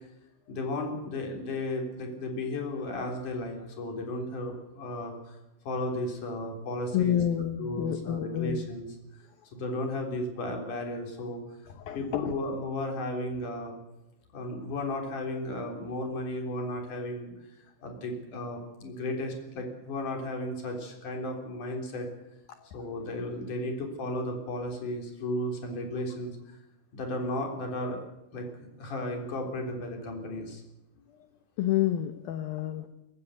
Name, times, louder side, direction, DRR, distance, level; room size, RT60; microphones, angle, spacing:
voice 1, 0.5-5.4 5.6-7.2 7.6-8.9 9.5-11.4 11.9-13.7 14.3-17.3 17.8-22.1 22.7-26.4 26.9-28.0 28.3-30.6, left 1 dB, 45° left, 2 dB, 4.8 m, -34 dB
voice 2, 6.9-8.6 11.7-12.3 31.6-32.9, left 11 dB, 75° left, 9 dB, 2.3 m, -29 dB
20.5 x 16.0 x 8.2 m, 0.90 s
omnidirectional pair, 5.4 m